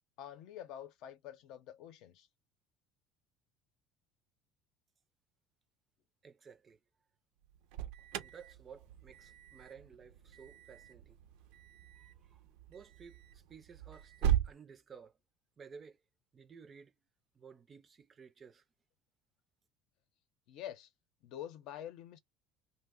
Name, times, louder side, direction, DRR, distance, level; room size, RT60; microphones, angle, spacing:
voice 1, 0.2-2.3 20.5-20.9 21.2-22.2, left 11 dB, 65° left, 0.7 m, -47 dB
voice 2, 6.2-6.8 8.2-11.2 12.0-12.4 12.7-15.1 15.6-16.0 16.3-16.9 17.4-18.6, right 6 dB, 30° right, 0.5 m, -55 dB
Alarm, 7.4-14.5, right 10 dB, 80° right, 0.5 m, -39 dB
2.7 x 2.1 x 3.6 m
cardioid pair, 130°, 0 cm